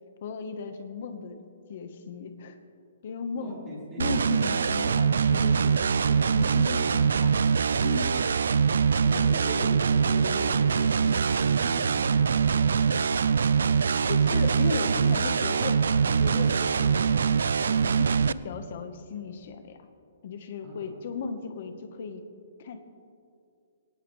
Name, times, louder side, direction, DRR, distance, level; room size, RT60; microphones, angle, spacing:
voice 1, 0.2-1.4 1.7-2.6 3.0-3.6 4.0-7.4 7.8-8.2 11.0-11.3 14.1-17.5 17.8-19.8 20.2-22.2 22.6-22.8, left 5 dB, 40° left, 7 dB, 1.2 m, -36 dB
voice 2, 3.4-4.1 9.0-12.9 20.6-20.9, equal, 10° right, -6 dB, 5.1 m, -39 dB
sound 1, 4.0-18.3, right 6 dB, 80° right, 0.4 m, -23 dB
21.5 x 18.5 x 3.3 m, 2.4 s
hypercardioid pair, 180°, 0 cm